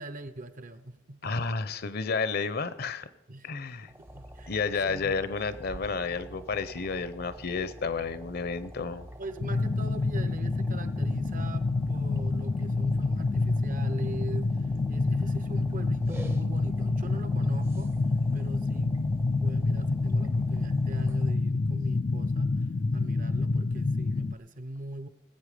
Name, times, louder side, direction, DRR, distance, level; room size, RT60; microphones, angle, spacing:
voice 1, 0.0-1.4 3.3-3.5 3.8-4.6 4.8-5.2 9.2-14.6 14.9-17.9 18.3-22.7 22.9-25.1, right 2 dB, 45° right, 12 dB, 0.7 m, -42 dB
voice 2, 1.2-3.1 3.4-3.9 4.5-9.1, left 4 dB, 55° left, 14 dB, 0.7 m, -31 dB
sound 1, 3.8-21.4, equal, 10° right, 0.6 m, -47 dB
sound 2, 9.4-24.3, left 3 dB, 30° left, 0.3 m, -28 dB
19.5 x 8.1 x 5.0 m, 0.94 s
head